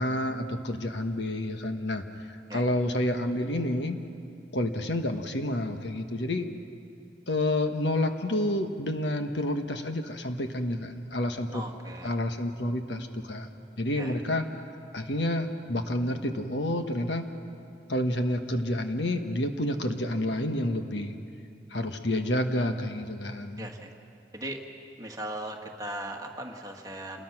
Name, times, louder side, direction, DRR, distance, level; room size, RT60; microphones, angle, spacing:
voice 1, 0.0-4.0 4.5-6.5 7.3-11.6 12.0-13.5 13.8-14.5 14.9-17.3 17.9-21.1 21.7-23.7, left 1 dB, 70° left, 6 dB, 1.4 m, -29 dB
voice 2, 11.5-12.1 14.0-14.2 23.6-23.9 24.3-24.6 25.0-27.2, right 1 dB, 20° right, 2 dB, 1.7 m, -38 dB
28.0 x 21.0 x 6.0 m, 2.5 s
head